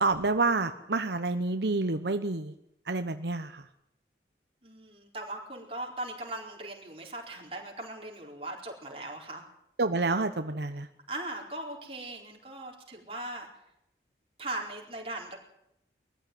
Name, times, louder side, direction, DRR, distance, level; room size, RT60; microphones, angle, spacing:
voice 1, 0.0-2.5 2.9-3.6 9.8-10.9, right 3 dB, 75° right, 8 dB, 1.0 m, -28 dB
voice 2, 4.6-9.4 11.1-13.5 14.4-15.4, right 2 dB, 35° right, 0 dB, 4.4 m, -39 dB
21.5 x 14.0 x 9.4 m, 0.80 s
head